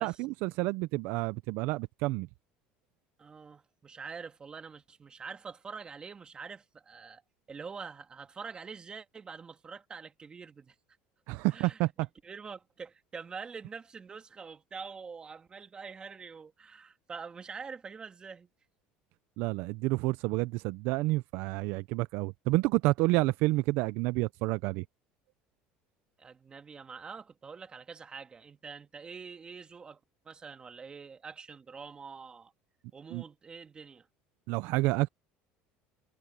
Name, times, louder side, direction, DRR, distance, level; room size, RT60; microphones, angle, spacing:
voice 1, 0.0-2.3 11.3-11.9 19.4-24.8 33.1-33.2 34.5-35.1, right 21 dB, 70° right, 0.5 m, -29 dB
voice 2, 3.2-7.2 7.5-10.8 11.5-18.5 26.2-32.5 32.9-34.1, right 5 dB, 25° right, 2.2 m, -45 dB
cardioid pair, 125°, 4 cm